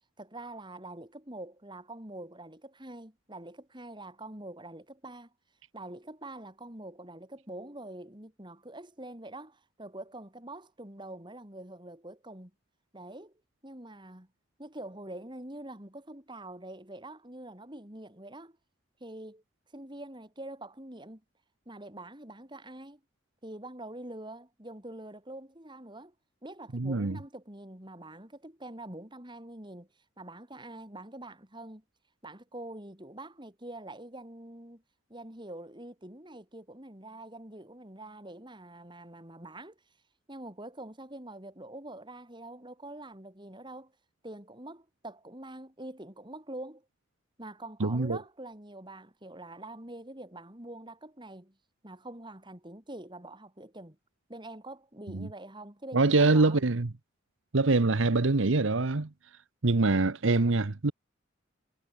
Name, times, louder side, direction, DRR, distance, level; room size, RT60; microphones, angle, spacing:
voice 1, 0.2-5.3 5.7-12.5 12.9-13.3 13.6-14.3 14.6-18.6 19.0-19.4 19.7-21.2 21.7-23.0 23.4-26.1 26.4-29.9 30.2-31.8 32.2-34.8 35.1-39.8 40.3-43.9 44.2-46.8 47.4-51.6 51.8-54.0 54.3-56.6, right 1 dB, 25° right, 4.5 m, -45 dB
voice 2, 26.7-27.2 47.8-48.2 55.1-55.3 55.9-56.9 57.5-59.1 59.6-60.9, right 3 dB, 75° right, 1.0 m, -24 dB
head